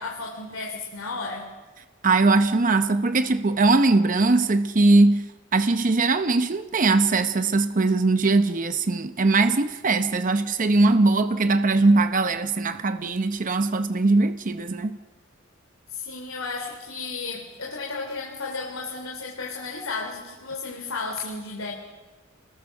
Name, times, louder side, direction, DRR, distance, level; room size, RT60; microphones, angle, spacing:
voice 1, 0.0-1.5 15.9-21.7, left 4 dB, 80° left, 3.1 m, -33 dB
voice 2, 2.0-15.0, right 3 dB, 40° right, 0.7 m, -21 dB
28.5 x 20.5 x 6.5 m
head